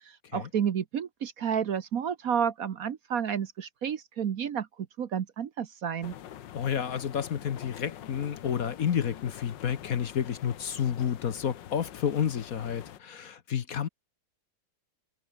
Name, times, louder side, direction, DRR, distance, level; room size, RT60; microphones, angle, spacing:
voice 1, 0.1-4.7 5.0-6.1, right 8 dB, 55° right, 1.3 m, -31 dB
sound 1, 6.0-13.0, left 11 dB, 90° left, 1.7 m, -45 dB
voice 2, 6.5-13.9, left 8 dB, 55° left, 1.4 m, -30 dB
omnidirectional pair, 1.9 m